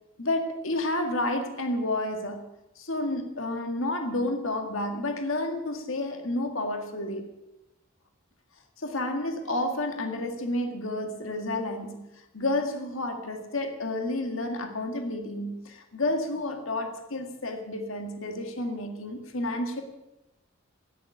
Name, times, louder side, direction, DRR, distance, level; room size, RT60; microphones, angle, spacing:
voice 1, 0.2-2.4 2.8-7.3 8.8-19.8, left 1 dB, 70° left, 5 dB, 1.9 m, -30 dB
13.5 x 10.0 x 9.4 m, 0.96 s
head